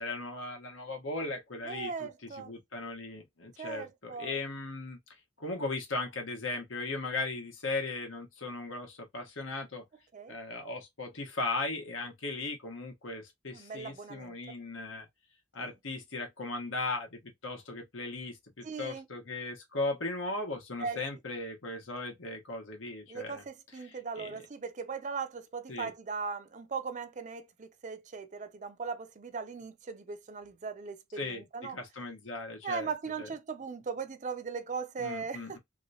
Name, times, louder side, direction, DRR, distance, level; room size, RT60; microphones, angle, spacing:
voice 1, 0.0-5.0 5.4-9.8 10.3-15.1 15.5-23.4 24.2-24.4 25.7-25.9 31.2-32.9 33.2-33.3 35.0-35.6, left 3 dB, 80° left, 1.2 m, -37 dB
voice 2, 1.6-2.5 3.6-4.4 10.1-10.3 13.5-14.4 15.6-15.7 18.6-19.1 20.8-21.0 23.1-31.8 32.6-35.6, right 5 dB, 40° right, 0.5 m, -39 dB
3.1 x 3.0 x 2.7 m
head